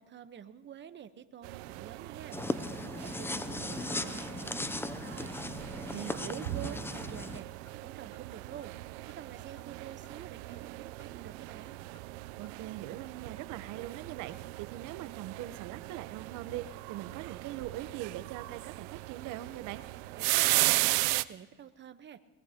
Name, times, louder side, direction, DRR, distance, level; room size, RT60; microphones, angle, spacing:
voice 1, 0.0-2.4 2.8-5.3 5.7-7.5 7.8-8.7 9.1-11.7 20.1-22.2, right 9 dB, 35° right, 11 dB, 1.0 m, -49 dB
sound 1, 1.4-21.2, right 21 dB, 90° right, 0.5 m, -36 dB
sound 2, 2.3-7.4, left 2 dB, 5° left, 0.5 m, -37 dB
Clock, 5.3-5.4 5.7-5.9 6.2-6.4 6.7-6.8 7.2-7.3 7.7-7.8 8.1-8.3 8.6-8.7 9.1-9.2 9.6-9.7 10.0-10.1 10.5-10.7 11.0-11.1 11.5-11.6 11.9-12.1 12.4-12.6, left 8 dB, 55° left, 2.2 m, -62 dB
voice 2, 5.9-6.7 12.4-19.8, right 13 dB, 65° right, 13 dB, 1.0 m, -41 dB
22.0 x 20.0 x 2.9 m, 1.2 s
supercardioid pair, 110°, 32 cm